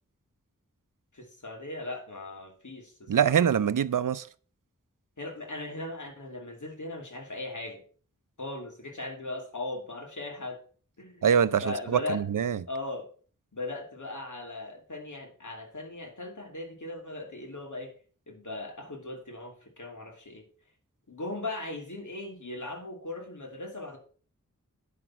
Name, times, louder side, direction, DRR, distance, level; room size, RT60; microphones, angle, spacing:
voice 1, 1.1-3.4 5.2-7.8 8.4-10.6 11.0-11.3 11.6-12.2 12.7-13.1 13.5-17.9 18.3-20.5 21.1-24.0, left 2 dB, 70° left, 2.7 m, -38 dB
voice 2, 3.1-4.3 11.2-12.6, right 8 dB, 90° right, 0.5 m, -24 dB
10.0 x 6.1 x 5.7 m
wide cardioid pair, 60°, 31 cm